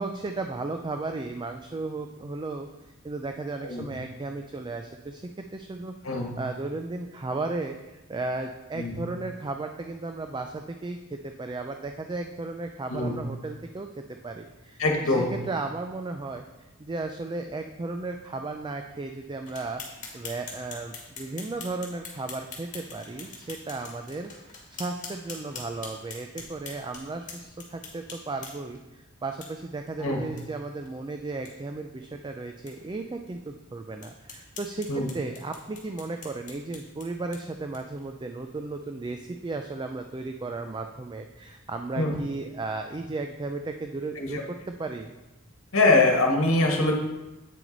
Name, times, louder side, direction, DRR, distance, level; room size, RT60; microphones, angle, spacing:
voice 1, 0.0-2.7 3.0-16.4 16.8-19.8 20.1-45.1, right 3 dB, 20° right, 5 dB, 0.4 m, -35 dB
voice 2, 14.8-15.3 30.0-30.2 34.9-35.1 42.0-42.1 44.2-44.4 45.7-46.9, left 2 dB, 70° left, 1 dB, 1.3 m, -23 dB
sound 1, 19.5-28.8 29.4-29.5 29.9-30.0 30.4-30.5 30.8-30.9 31.3-31.5 32.0-32.1 32.7-32.8 33.3-33.4 34.0-38.0, left 4 dB, 35° left, 1.9 m, -44 dB
8.7 x 6.1 x 3.9 m, 1.0 s
head